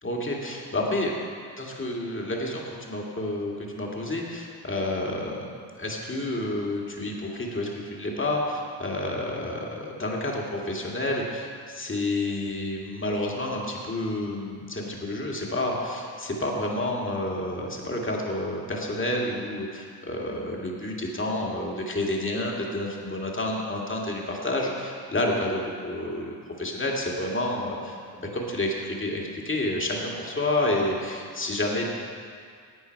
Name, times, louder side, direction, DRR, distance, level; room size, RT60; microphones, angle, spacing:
voice 1, 0.0-1.1 1.6-5.5 5.8-31.8, left 1 dB, 25° left, -1 dB, 2.3 m, -29 dB
12.0 x 8.6 x 4.7 m, 2.1 s
supercardioid pair, 60°, 44 cm